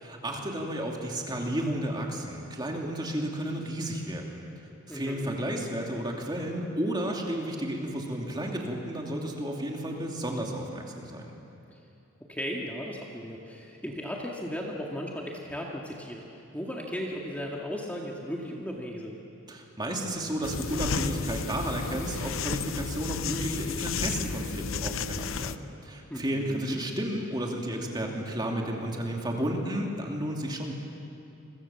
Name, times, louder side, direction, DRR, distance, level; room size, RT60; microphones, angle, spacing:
voice 1, 0.0-4.4 4.9-11.3 19.5-30.7, right 1 dB, 20° right, 0 dB, 2.8 m, -32 dB
voice 2, 4.9-5.3 11.7-11.8 12.3-16.2 16.5-19.2 26.1-26.8, equal, 5° left, -2 dB, 2.1 m, -36 dB
sound 1, 20.4-25.6, left 5 dB, 65° left, 0.7 m, -32 dB
29.0 x 23.5 x 7.3 m, 2.8 s
head